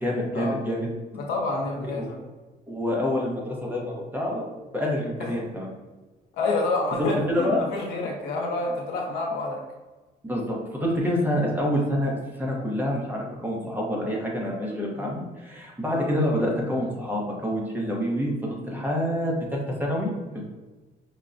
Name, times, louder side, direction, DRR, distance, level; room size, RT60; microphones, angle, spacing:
voice 1, 0.0-0.8 1.9-2.0 2.7-4.4 4.7-5.7 7.0-7.6 10.2-12.1 12.4-20.1, equal, 10° right, -3 dB, 0.9 m, -27 dB
voice 2, 1.1-2.2 5.2-5.4 6.3-9.6 15.0-15.1 15.9-16.1 18.6-18.8, left 2 dB, 85° left, 0 dB, 0.8 m, -28 dB
5.4 x 2.2 x 2.5 m, 1.2 s
cardioid pair, 110°, 17 cm